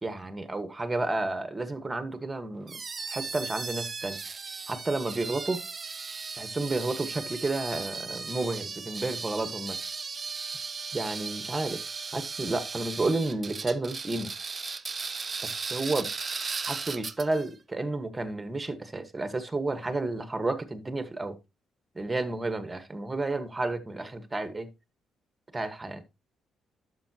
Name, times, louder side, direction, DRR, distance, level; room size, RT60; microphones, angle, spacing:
voice 1, 0.0-2.8 3.1-4.2 4.7-5.6 6.4-9.8 10.9-11.8 12.1-14.3 15.4-16.1 16.6-21.4 21.9-24.7 25.5-26.0, right 2 dB, 20° right, 1.3 m, -31 dB
sound 1, 2.7-17.5, right 5 dB, 35° right, 0.6 m, -36 dB
11.0 x 6.7 x 2.9 m
cardioid pair, 90°, 0 cm